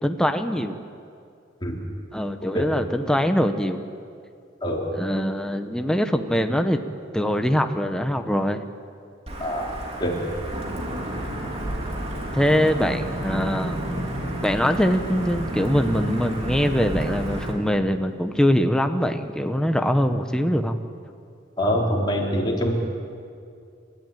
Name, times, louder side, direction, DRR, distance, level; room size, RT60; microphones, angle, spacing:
voice 1, 0.0-0.8 2.1-3.8 4.9-6.8 7.1-8.6 12.3-13.8 14.4-20.8, equal, 5° left, 6 dB, 0.9 m, -23 dB
Wind / Thunder / Rain, 9.3-17.5, right 1 dB, 30° right, 3.3 m, -30 dB
voice 2, 21.6-22.7, equal, 25° left, -2 dB, 3.9 m, -24 dB
29.5 x 14.0 x 9.2 m, 2.4 s
head